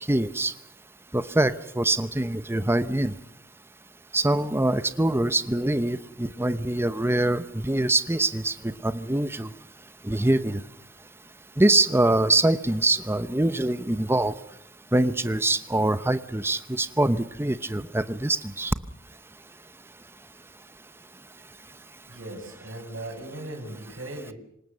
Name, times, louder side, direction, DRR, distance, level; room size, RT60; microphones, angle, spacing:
voice 1, 0.1-0.5 1.1-3.1 4.1-9.5 10.0-10.6 11.6-14.3 14.9-18.7, right 2 dB, 10° right, 13 dB, 0.8 m, -24 dB
voice 2, 22.1-24.3, right 1 dB, 80° right, -4 dB, 6.4 m, -38 dB
26.5 x 19.0 x 6.6 m, 0.76 s
head